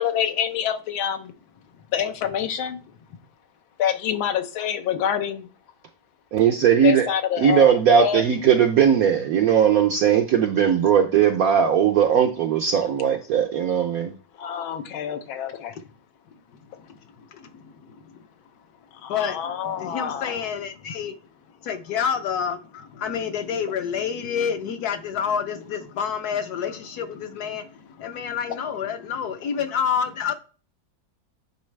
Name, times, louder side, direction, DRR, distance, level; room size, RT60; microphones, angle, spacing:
voice 1, 0.0-1.3 1.9-2.8 3.8-5.5 6.8-8.2 14.4-15.7 19.0-20.3, left 9 dB, 90° left, 1.6 m, -26 dB
voice 2, 6.3-7.1 7.4-14.1, right 8 dB, 75° right, 0.8 m, -19 dB
voice 3, 16.3-18.2 19.1-21.1 21.6-30.3, left 7 dB, 65° left, 1.0 m, -29 dB
9.6 x 3.9 x 3.2 m
omnidirectional pair, 2.1 m